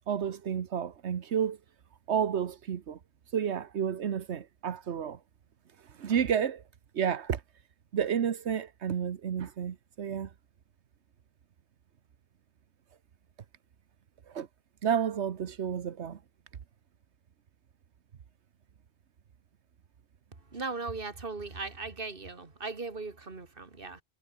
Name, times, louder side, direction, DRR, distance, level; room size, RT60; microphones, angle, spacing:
voice 1, 0.1-1.6 2.1-3.0 3.3-5.2 5.8-6.6 6.9-7.4 7.9-10.3 14.3-14.5 14.8-16.2, right 8 dB, 85° right, 1.3 m, -31 dB
voice 2, 20.5-24.0, right 3 dB, 55° right, 2.4 m, -38 dB
omnidirectional pair, 1.1 m